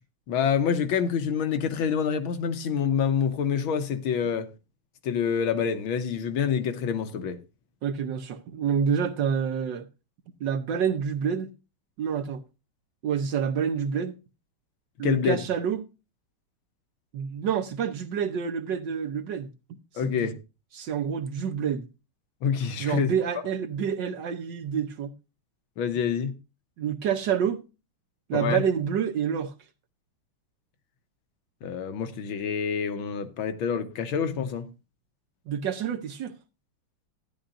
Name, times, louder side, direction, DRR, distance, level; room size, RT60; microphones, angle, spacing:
voice 1, 0.3-4.5 5.0-7.4 15.0-15.4 20.0-20.4 22.4-23.1 25.8-26.3 28.3-28.6 31.6-34.7, left 7 dB, 70° left, 1.7 m, -27 dB
voice 2, 7.8-9.9 10.4-11.5 12.0-12.4 13.0-14.1 15.0-15.9 17.1-19.5 20.0-20.3 20.7-21.9 22.8-25.1 26.8-27.6 28.3-29.5 35.5-36.3, right 7 dB, 65° right, 1.3 m, -28 dB
13.0 x 9.9 x 2.5 m
omnidirectional pair, 2.4 m